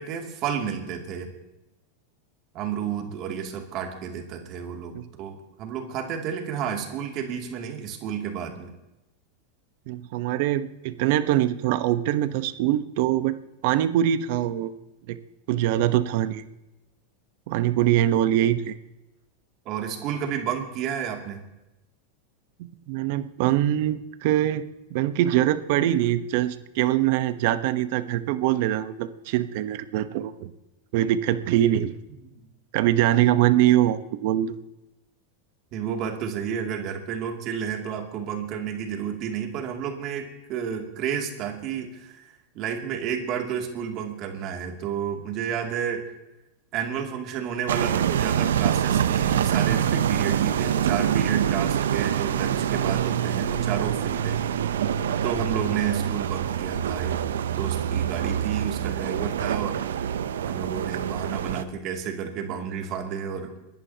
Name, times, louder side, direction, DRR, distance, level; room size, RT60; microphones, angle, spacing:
voice 1, 0.0-1.3 2.5-8.7 19.6-21.4 35.7-42.2 42.5-46.1 46.7-54.4 55.2-57.2 57.5-60.1 60.5-63.5, right 8 dB, 45° right, 2 dB, 2.6 m, -31 dB
voice 2, 9.9-13.4 13.6-14.7 15.1-15.2 15.5-16.4 17.5-18.7 22.6-24.6 24.9-30.5 30.9-31.9 32.7-34.6, right 12 dB, 65° right, 11 dB, 0.9 m, -23 dB
sound 1, 47.7-61.6, right 9 dB, 90° right, 0.7 m, -25 dB
29.5 x 11.0 x 2.9 m, 0.97 s
hypercardioid pair, 115°, 0 cm